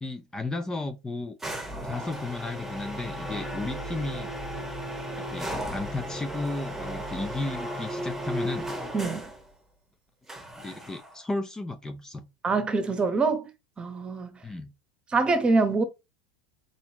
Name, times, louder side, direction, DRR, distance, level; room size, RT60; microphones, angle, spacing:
voice 1, 0.0-1.4 1.8-4.3 5.3-8.7 10.6-12.3 14.4-14.7, left 2 dB, 15° left, 0.6 m, -34 dB
sound 1, 1.4-9.4 10.3-11.2, right 1 dB, 5° right, 1.4 m, -35 dB
voice 2, 8.9-9.2 12.4-13.5 13.8-14.3 15.1-15.8, right 3 dB, 20° right, 1.1 m, -24 dB
4.0 x 3.9 x 2.9 m
hypercardioid pair, 100°, 4 cm